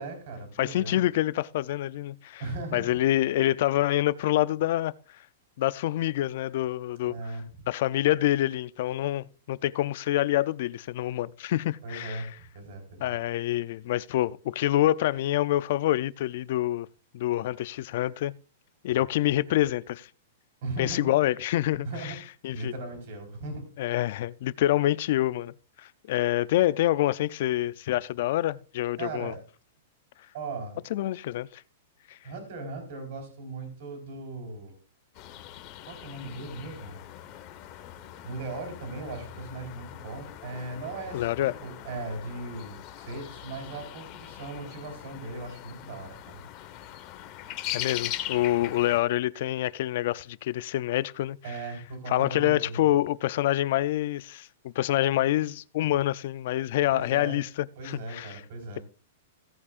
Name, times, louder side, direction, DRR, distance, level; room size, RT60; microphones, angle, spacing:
voice 1, 0.0-1.0 2.4-2.9 7.1-7.4 11.8-13.1 20.6-21.1 21.8-22.2 22.5-23.7 29.0-29.4 30.3-30.8 32.2-34.8 35.9-37.0 38.2-46.4 51.4-52.9 56.9-57.4 57.8-58.8, right 2 dB, 55° right, 4.2 m, -38 dB
voice 2, 0.6-2.4 2.7-4.9 5.6-7.1 7.7-12.3 13.0-16.9 17.1-18.3 18.8-20.1 20.8-22.2 22.4-22.7 23.8-29.3 30.9-31.6 32.1-32.2 41.1-41.5 47.7-51.4 52.1-54.5 54.8-58.4, left 14 dB, 50° left, 0.4 m, -26 dB
sound 1, 35.1-49.0, left 13 dB, 35° left, 1.1 m, -41 dB
16.5 x 8.4 x 2.5 m
supercardioid pair, 160°, 0 cm